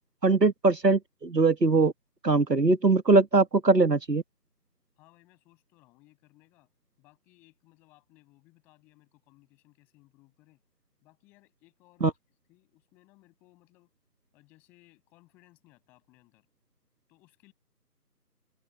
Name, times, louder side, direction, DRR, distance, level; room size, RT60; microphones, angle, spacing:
voice 1, 0.2-1.9 2.2-4.2 12.0-12.1, right 3 dB, 85° right, 1.6 m, -21 dB
voice 2, 5.0-6.7 7.0-10.6 11.0-12.1 12.5-13.9 14.3-16.5 17.1-17.5, left 21 dB, 5° left, 6.8 m, -62 dB
open air
figure-of-eight pair, 170°, 48 cm